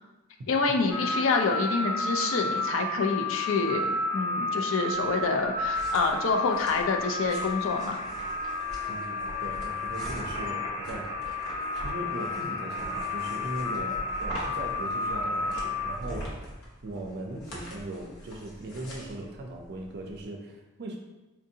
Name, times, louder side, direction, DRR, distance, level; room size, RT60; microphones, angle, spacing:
voice 1, 0.5-3.9 4.1-8.0, left 4 dB, 65° left, 4 dB, 0.4 m, -27 dB
sound 1, 0.9-15.9, left 2 dB, 25° left, 0.7 m, -32 dB
sound 2, 4.9-20.2, equal, 85° left, 0.9 m, -43 dB
voice 2, 8.9-21.0, right 1 dB, 50° right, 1 dB, 0.4 m, -39 dB
4.5 x 2.6 x 2.7 m, 1.1 s
head